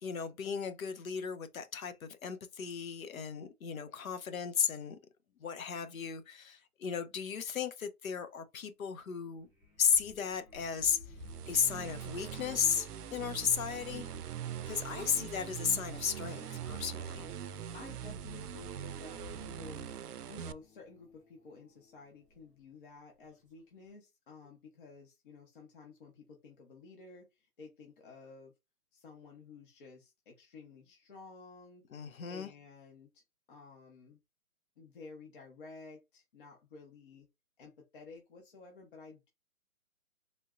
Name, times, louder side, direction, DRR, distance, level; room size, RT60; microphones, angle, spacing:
voice 1, 0.0-5.0 5.4-9.5 9.8-11.1 11.5-14.1 14.7-17.3 31.9-32.5, left 7 dB, 65° left, 0.9 m, -35 dB
sound 1, 9.4-22.7 23.3-23.6 23.8-23.9, left 2 dB, 5° left, 0.8 m, -55 dB
sound 2, 11.2-20.5, right 9 dB, 85° right, 0.5 m, -42 dB
voice 2, 14.8-15.2 17.7-20.0 20.3-28.5 28.9-31.9 32.3-33.2 33.5-34.2 34.8-37.3 37.6-39.3, left 4 dB, 35° left, 1.0 m, -53 dB
3.6 x 2.5 x 2.5 m
hypercardioid pair, 155°, 45 cm